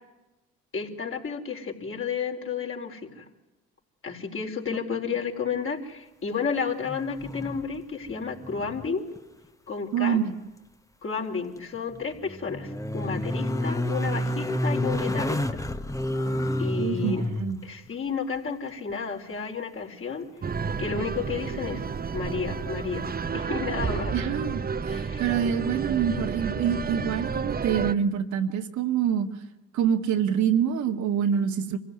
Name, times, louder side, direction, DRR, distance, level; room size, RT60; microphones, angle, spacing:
voice 1, 0.7-3.2 4.0-9.0 9.7-10.2 11.0-15.7 16.6-17.2 17.6-20.3 20.8-21.8 22.1-23.1 23.3-24.2 24.9-25.2, left 5 dB, 45° left, 2 dB, 4.5 m, -32 dB
sound 1, 6.8-7.8 8.1-8.9 9.2-9.3 11.7-17.6 20.5-20.6, left 1 dB, 10° left, 1.3 m, -29 dB
voice 2, 9.9-10.3 16.8-17.6 24.1-29.3 29.7-31.8, right 8 dB, 70° right, 5 dB, 1.9 m, -26 dB
sound 2, 20.4-27.9, right 5 dB, 30° right, 1.0 m, -31 dB
25.0 x 16.0 x 9.8 m, 1.1 s
supercardioid pair, 70°, 30 cm